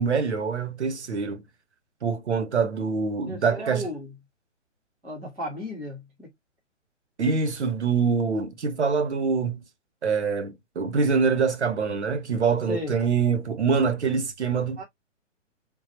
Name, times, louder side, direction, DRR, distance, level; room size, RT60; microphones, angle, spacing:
voice 1, 0.0-1.4 2.0-3.9 7.2-9.6 10.0-14.8, right 5 dB, 60° right, 1.1 m, -25 dB
voice 2, 3.3-4.1 5.0-6.3 12.7-13.0 14.8-14.9, left 1 dB, ahead, 0.4 m, -34 dB
3.8 x 2.3 x 4.2 m
figure-of-eight pair, 125°, 38 cm